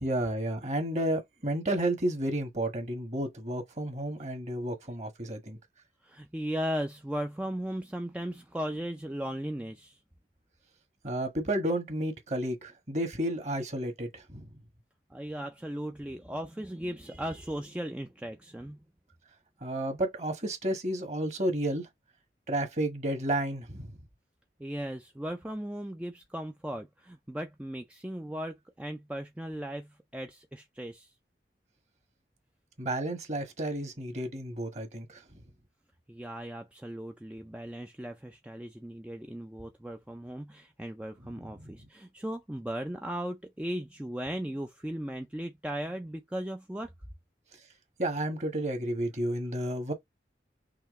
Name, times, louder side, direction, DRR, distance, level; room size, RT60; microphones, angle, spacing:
voice 1, 0.0-5.6 11.0-14.5 19.6-21.9 22.5-24.0 32.8-35.2 41.2-41.9 48.0-49.9, right 1 dB, 40° right, 1.4 m, -32 dB
voice 2, 6.0-10.0 15.1-18.8 24.6-31.1 36.1-46.9, equal, 5° right, 0.3 m, -37 dB
5.8 x 2.9 x 3.1 m
head